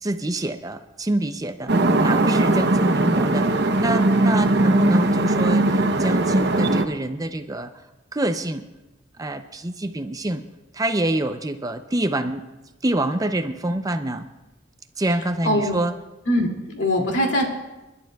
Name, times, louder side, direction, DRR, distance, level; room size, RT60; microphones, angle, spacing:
voice 1, 0.0-7.8 8.1-8.6 9.2-10.4 10.7-12.4 12.8-14.3 15.0-15.9 17.0-17.1, right 1 dB, 20° right, 8 dB, 0.5 m, -26 dB
sound 1, 1.7-6.8, right 2 dB, 60° right, 0.8 m, -19 dB
voice 2, 16.3-17.4, equal, 70° left, 0 dB, 2.4 m, -22 dB
30.0 x 11.5 x 2.3 m, 1.1 s
head